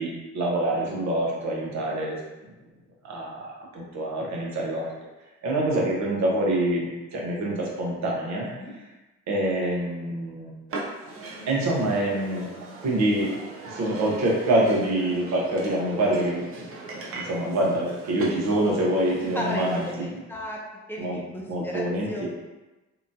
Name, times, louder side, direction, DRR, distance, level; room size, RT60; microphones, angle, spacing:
voice 1, 0.0-2.2 3.0-4.9 5.4-8.5 9.3-10.5 11.5-12.5 12.8-13.3 13.7-16.7 17.1-20.1 21.0-21.2 21.5-22.3, right 1 dB, 65° right, -3 dB, 0.8 m, -26 dB
sound 1, 10.7-19.9, right 2 dB, 45° right, 0.5 m, -39 dB
voice 2, 19.3-20.6 20.9-21.8 22.1-22.3, equal, 5° left, -3 dB, 0.6 m, -34 dB
2.8 x 2.2 x 2.6 m, 1.1 s
cardioid pair, 90°, 30 cm